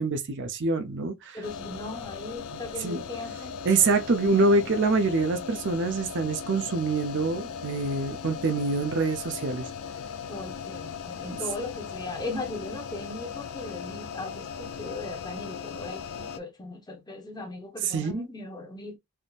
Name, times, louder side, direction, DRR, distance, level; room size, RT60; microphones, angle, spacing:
voice 1, 0.0-1.4 2.8-3.0 3.6-9.7 11.3-11.4 17.8-18.3, right 3 dB, 55° right, 0.6 m, -25 dB
voice 2, 1.3-3.5 10.3-19.0, left 2 dB, 20° left, 0.9 m, -38 dB
sound 1, 1.4-16.4, left 6 dB, 65° left, 0.4 m, -38 dB
3.5 x 2.7 x 2.4 m
head